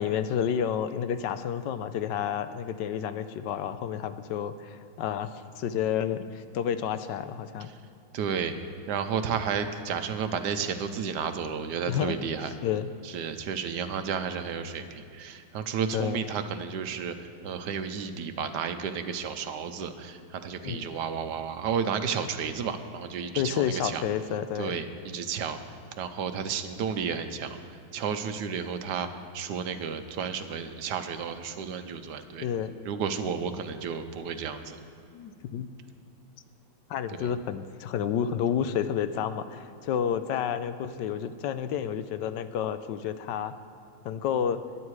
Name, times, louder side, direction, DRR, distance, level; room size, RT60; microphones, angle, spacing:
voice 1, 0.0-7.7 11.9-12.2 12.6-12.9 15.9-16.2 20.6-20.9 23.4-24.7 32.4-32.7 35.1-35.7 36.9-43.5 44.0-44.6, left 8 dB, 80° left, 11 dB, 1.3 m, -30 dB
voice 2, 8.1-8.5 8.9-12.5 13.0-24.0 24.6-25.6 26.0-27.6 27.9-29.1 29.3-32.5 32.8-34.8 37.2-37.3, right 6 dB, 70° right, 9 dB, 1.3 m, -32 dB
21.5 x 8.6 x 4.8 m, 2.6 s
omnidirectional pair, 1.9 m